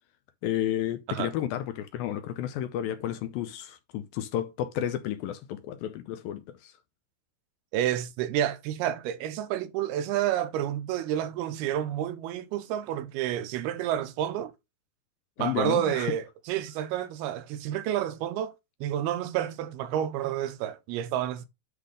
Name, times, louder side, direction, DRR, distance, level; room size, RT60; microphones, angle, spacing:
voice 1, 0.4-6.7 15.4-16.1, left 11 dB, 80° left, 2.3 m, -32 dB
voice 2, 7.7-14.5 15.4-18.5 18.8-21.5, right 11 dB, 80° right, 2.8 m, -29 dB
9.9 x 3.5 x 4.9 m
omnidirectional pair, 4.5 m